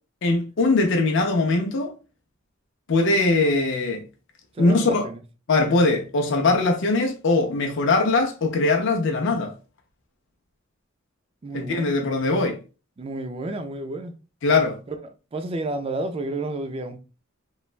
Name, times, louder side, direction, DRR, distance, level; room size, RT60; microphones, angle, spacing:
voice 1, 0.2-1.9 2.9-4.0 4.6-5.0 5.5-9.5 11.5-12.6 14.4-14.8, left 3 dB, 60° left, 0.5 m, -21 dB
voice 2, 4.5-5.2 11.4-12.2 13.0-14.1 14.9-17.0, right 2 dB, 30° right, 0.3 m, -31 dB
3.1 x 2.1 x 2.4 m
head